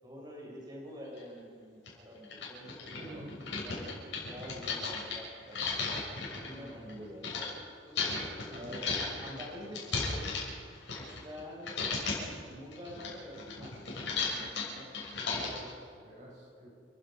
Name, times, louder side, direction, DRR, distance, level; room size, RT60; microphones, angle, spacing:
voice 1, 0.0-5.9 6.3-10.3 10.9-14.9, equal, 25° right, -3 dB, 6.4 m, -48 dB
sound 1, 1.2-1.3 1.9-2.0 2.2-7.5 7.9-11.4 11.6-12.3 12.7-15.7, left 4 dB, 70° left, 6.7 m, -35 dB
voice 2, 3.0-3.7 6.5-6.8 8.5-9.0 15.2-16.8, equal, 40° right, -4 dB, 7.1 m, -48 dB
29.5 x 16.0 x 5.4 m, 2.2 s
head